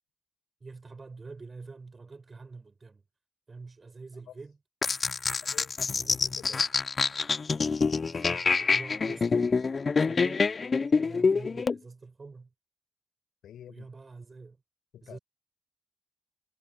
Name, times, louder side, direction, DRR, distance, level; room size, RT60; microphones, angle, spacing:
voice 1, 0.6-3.0 3.5-4.6 6.0-6.6 8.0-10.5 10.9-12.5 13.7-14.6 15.0-15.2, right 4 dB, 45° right, 7.2 m, -46 dB
sound 1, 4.8-11.8, left 4 dB, 50° left, 0.5 m, -26 dB
voice 2, 5.4-6.7 13.4-13.9 14.9-15.2, left 10 dB, 85° left, 4.8 m, -49 dB
supercardioid pair, 40°, 0 cm